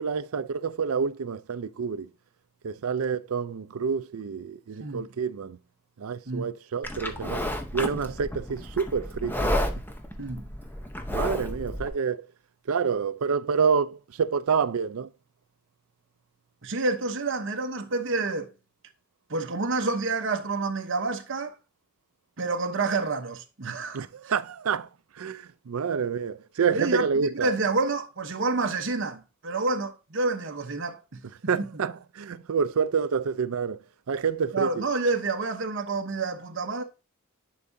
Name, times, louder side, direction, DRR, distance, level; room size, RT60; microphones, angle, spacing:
voice 1, 0.0-2.1 2.6-5.6 6.0-7.4 7.7-9.5 11.1-12.3 12.7-15.1 23.9-24.9 25.1-27.5 31.5-33.8 34.1-34.8, right 6 dB, 75° right, 0.5 m, -28 dB
Livestock farm animals working animals, 6.8-11.9, left 1 dB, 10° left, 0.8 m, -31 dB
voice 2, 10.2-10.5 16.6-18.5 19.3-21.6 22.4-24.0 26.7-31.2 31.6-31.7 34.5-36.8, right 3 dB, 60° right, 0.9 m, -28 dB
10.5 x 4.8 x 2.7 m
head